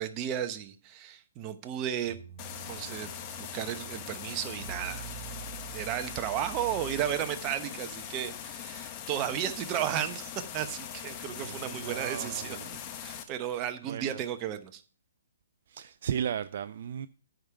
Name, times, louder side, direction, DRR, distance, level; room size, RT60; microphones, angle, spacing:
voice 1, 0.0-2.2 2.6-3.1 3.4-5.0 5.7-14.8, right 10 dB, 30° right, 0.9 m, -34 dB
sound 1, 2.0-7.5, right 9 dB, 75° right, 1.3 m, -46 dB
sound 2, 2.4-13.2, left 9 dB, 30° left, 1.1 m, -41 dB
voice 2, 11.3-12.7 13.8-14.2 15.7-17.1, right 8 dB, 55° right, 0.4 m, -36 dB
9.3 x 5.2 x 6.9 m
hypercardioid pair, 130°, 0 cm